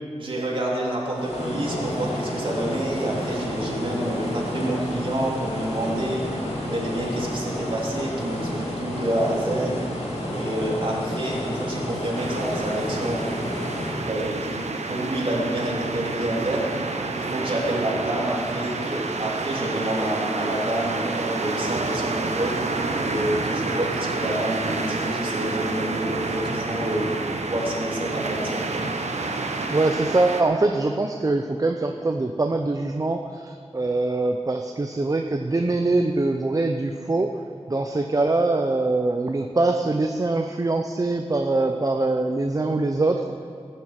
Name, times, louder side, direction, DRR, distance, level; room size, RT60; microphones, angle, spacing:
voice 1, 0.2-6.2 6.6-9.8 10.3-13.3 14.0-14.6 14.9-16.7 17.1-22.5 23.0-27.1 27.5-28.8, right 1 dB, 50° right, -5 dB, 3.2 m, -28 dB
sound 1, 1.1-14.1, left 1 dB, 90° left, 3.7 m, -30 dB
sound 2, 12.1-30.4, right 3 dB, 85° right, 0.9 m, -29 dB
voice 2, 29.7-37.4 37.7-43.4, right 2 dB, 30° right, 5 dB, 0.6 m, -23 dB
15.0 x 7.3 x 8.0 m, 2.5 s
wide cardioid pair, 85°, 11 cm